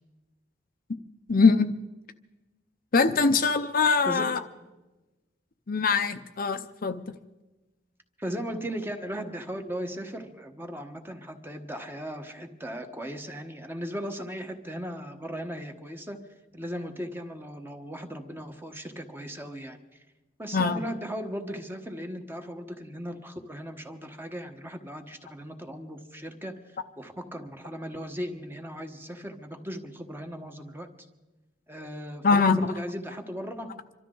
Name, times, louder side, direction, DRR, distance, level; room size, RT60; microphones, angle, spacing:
voice 1, 1.3-1.7 2.9-4.4 5.7-7.0 20.5-20.8 32.2-32.6, left 4 dB, 50° left, 8 dB, 0.6 m, -22 dB
voice 2, 4.1-4.4 8.2-19.8 20.4-30.9 31.7-33.8, equal, 10° right, 5 dB, 1.2 m, -37 dB
26.5 x 13.0 x 3.8 m, 1.1 s
head